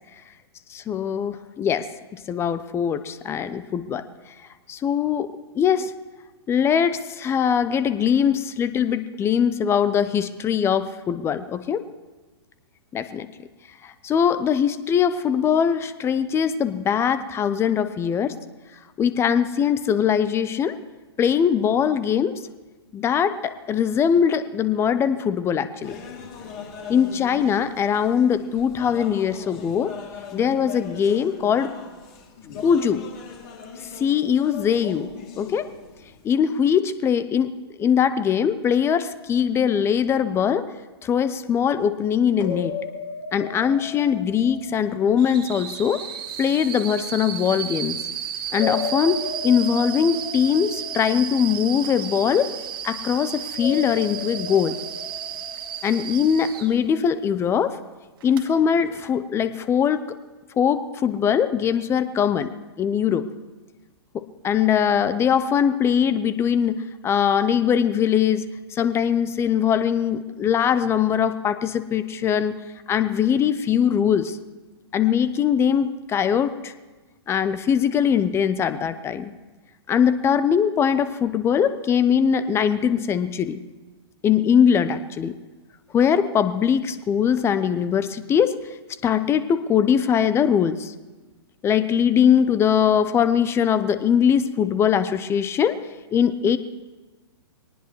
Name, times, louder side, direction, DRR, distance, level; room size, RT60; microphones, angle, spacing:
voice 1, 0.9-4.1 4.7-5.9 6.5-11.8 12.9-13.3 13.8-18.3 19.0-20.8 21.2-22.4 22.9-26.0 26.9-29.9 30.3-31.7 32.6-33.0 34.0-35.1 35.4-35.7 36.2-37.5 37.8-40.7 41.0-42.7 43.3-46.0 46.4-48.0 48.5-52.5 52.8-54.8 55.8-57.8 58.2-60.0 60.6-63.3 64.1-68.4 68.7-72.6 72.9-74.4 74.9-76.7 77.3-79.3 79.9-83.6 84.2-85.3 85.9-88.5 89.0-90.9 91.6-95.8 96.1-96.6, left 8 dB, 20° left, 13 dB, 0.6 m, -21 dB
cave.large.hall, 25.8-36.3, left 6 dB, 40° left, 2.9 m, -40 dB
sound 1, 42.4-45.4 48.5-51.8 53.5-56.3, left 5 dB, 55° left, 2.7 m, -34 dB
sound 2, 45.2-56.8 58.2-58.4, right 9 dB, 55° right, 2.0 m, -33 dB
22.0 x 19.0 x 3.2 m, 1.2 s
figure-of-eight pair, 110°, 14 cm